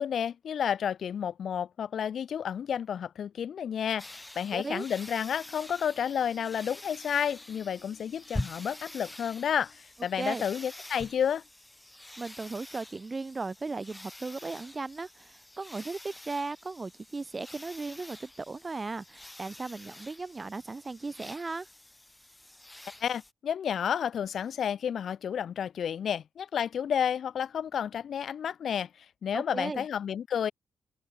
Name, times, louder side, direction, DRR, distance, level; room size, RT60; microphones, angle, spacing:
voice 1, 0.0-11.4 23.0-28.9 29.2-30.5, left 8 dB, 65° left, 0.4 m, -31 dB
sound 1, 4.0-23.3, left 1 dB, 10° left, 4.0 m, -46 dB
voice 2, 4.5-4.9 10.2-10.5 12.2-21.7 29.3-29.9, right 3 dB, 30° right, 0.6 m, -37 dB
open air
cardioid pair, 70°, 0 cm